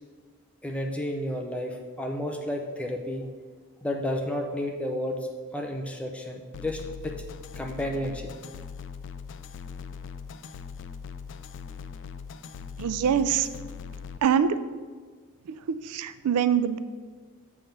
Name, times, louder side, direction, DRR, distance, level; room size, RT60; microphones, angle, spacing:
voice 1, 0.6-3.3 3.8-5.2 5.5-7.1 7.6-8.3, left 1 dB, 5° left, 1 dB, 0.6 m, -31 dB
sound 1, 6.5-14.2, left 6 dB, 55° left, 0.3 m, -40 dB
voice 2, 12.8-13.5 14.2-14.6 15.5-16.8, right 8 dB, 80° right, 13 dB, 0.3 m, -24 dB
7.7 x 3.6 x 5.7 m, 1.5 s
head